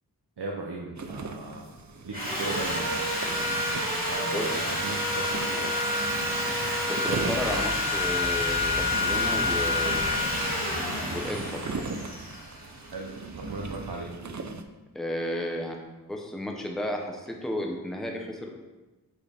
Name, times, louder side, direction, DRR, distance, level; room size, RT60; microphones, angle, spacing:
voice 1, 0.4-1.7 2.0-3.1 3.8-5.7 12.9-14.1, right 3 dB, 85° right, 0 dB, 0.7 m, -37 dB
sound 1, 1.0-14.6, right 3 dB, 45° right, 0.5 m, -38 dB
Sawing, 2.1-13.2, left 1 dB, 20° right, 2.1 m, -28 dB
voice 2, 6.9-10.3 11.1-11.6 14.9-15.8 16.1-18.5, left 1 dB, ahead, 1 dB, 0.8 m, -33 dB
sound 2, 7.2-11.2, left 3 dB, 25° left, 0.5 m, -38 dB
6.7 x 5.0 x 3.5 m, 1.2 s
wide cardioid pair, 40°, 39 cm